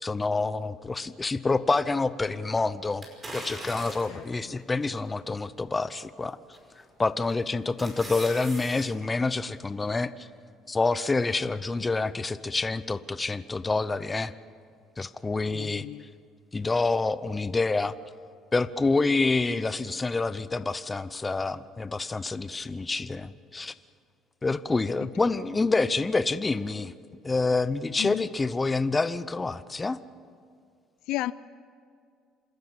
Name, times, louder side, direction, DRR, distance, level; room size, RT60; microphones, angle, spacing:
voice 1, 0.0-3.0 3.3-6.4 7.0-10.3 10.7-14.3 15.0-15.9 16.5-18.0 18.5-23.7 24.4-26.9 27.2-30.0, left 3 dB, 15° left, 0.7 m, -27 dB
sound 1, 3.0-4.3 4.9-5.0 6.5-6.9 7.3-8.9 9.2-9.3, right 1 dB, 20° right, 5.3 m, -40 dB
voice 2, 4.1-4.6 15.5-16.1 25.0-25.1 28.0-28.2 31.1-31.3, left 17 dB, 75° left, 0.4 m, -34 dB
27.5 x 13.0 x 8.3 m
cardioid pair, 130°, 0 cm